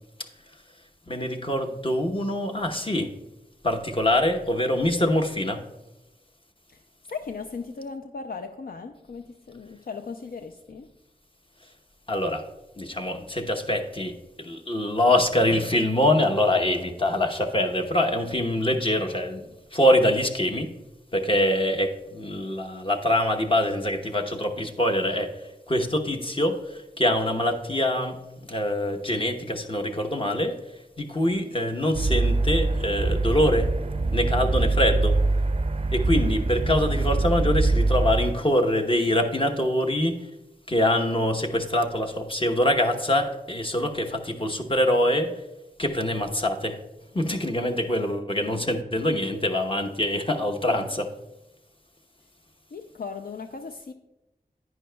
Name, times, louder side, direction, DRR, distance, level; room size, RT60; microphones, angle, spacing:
voice 1, 1.1-3.2 3.6-5.6 12.1-12.5 12.8-20.7 21.1-25.4 25.7-30.6 31.0-33.7 34.1-35.2 35.9-40.3 40.7-45.4 45.8-46.8 47.1-51.1, left 1 dB, 35° left, 0.9 m, -24 dB
voice 2, 7.1-10.9 52.7-53.9, left 5 dB, 70° left, 0.5 m, -37 dB
sound 1, 31.9-38.3, right 3 dB, 40° right, 0.4 m, -23 dB
10.5 x 9.4 x 2.2 m
wide cardioid pair, 65°, 16 cm